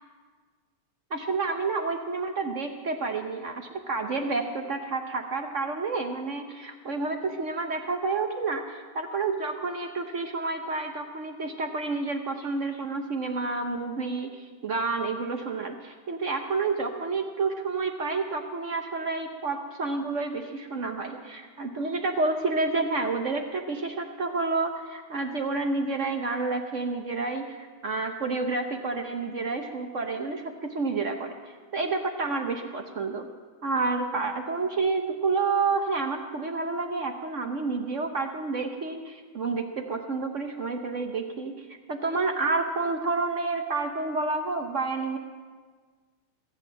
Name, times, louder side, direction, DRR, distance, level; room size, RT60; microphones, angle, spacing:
voice 1, 1.1-31.3 31.7-33.3 33.6-45.2, right 3 dB, 55° right, 6 dB, 0.9 m, -29 dB
22.5 x 8.2 x 7.5 m, 1.5 s
omnidirectional pair, 2.3 m